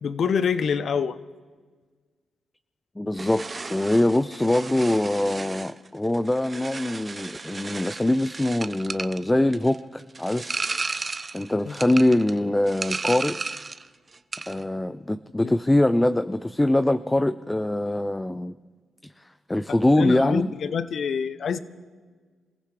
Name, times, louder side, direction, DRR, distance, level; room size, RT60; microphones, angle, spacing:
voice 1, 0.0-1.2 11.6-11.7 15.4-15.5 19.9-21.6, left 6 dB, 65° left, 14 dB, 0.8 m, -26 dB
voice 2, 3.0-10.5 11.0-11.1 11.3-13.4 14.5-18.6 19.0-20.5, left 1 dB, 15° left, 13 dB, 0.5 m, -23 dB
sound 1, 3.2-13.9 14.1-14.6, right 3 dB, 35° right, 0.7 m, -34 dB
27.5 x 15.5 x 3.3 m, 1.5 s
supercardioid pair, 55°, 0 cm